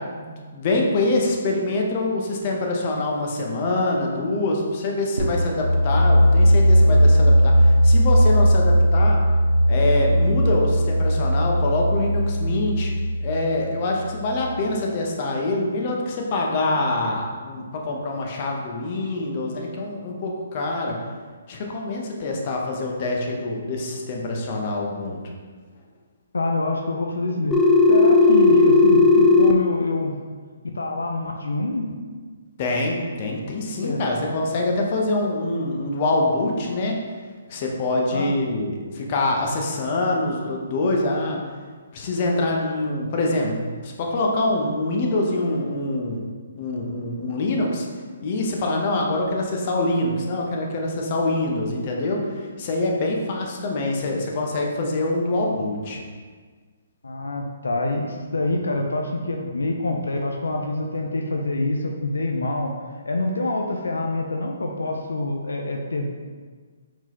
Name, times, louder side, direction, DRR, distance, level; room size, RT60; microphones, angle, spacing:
voice 1, 0.0-9.2 9.7-12.9 13.2-21.0 21.5-25.2 32.6-37.0 37.5-41.4 41.9-46.2 46.5-47.9 48.2-56.0, left 2 dB, 40° left, 0 dB, 0.8 m, -25 dB
sound 1, 5.2-14.8, equal, 85° right, 0.6 m, -18 dB
voice 2, 26.3-30.2 30.7-31.9 33.8-34.0 38.1-38.3 57.0-62.7 63.1-66.2, left 2 dB, 85° left, 2 dB, 0.5 m, -26 dB
Telephone, 27.5-29.5, left 3 dB, 15° left, 0.4 m, -14 dB
4.5 x 3.8 x 3.0 m, 1.5 s
hypercardioid pair, 145°, 0 cm